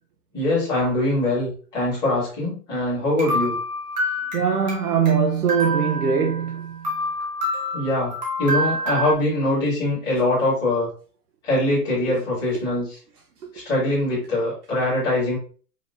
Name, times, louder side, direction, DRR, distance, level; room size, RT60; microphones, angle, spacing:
voice 1, 0.3-3.6 7.7-8.1 8.4-10.9 11.4-13.0 13.5-15.4, left 1 dB, 10° left, 1.7 m, -23 dB
sound 1, 3.2-5.2 5.5-6.5 6.8-9.1, equal, 25° right, 1.0 m, -27 dB
voice 2, 4.3-6.9, right 6 dB, 65° right, 0.8 m, -22 dB
5.1 x 3.0 x 2.6 m
hypercardioid pair, 175°, 49 cm